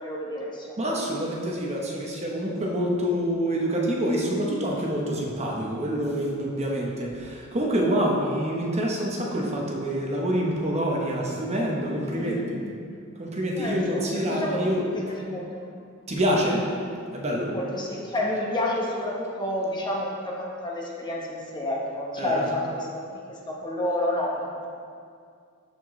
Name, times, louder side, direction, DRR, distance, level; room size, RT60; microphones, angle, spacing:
voice 1, 0.0-0.9 12.1-12.7 13.6-15.8 17.4-24.7, left 1 dB, 20° left, -3 dB, 1.0 m, -30 dB
voice 2, 0.8-12.6 13.2-15.2 16.1-16.7 17.1-17.5 22.2-22.5, equal, 30° right, -2 dB, 0.9 m, -26 dB
13.5 x 4.5 x 3.1 m, 2.3 s
head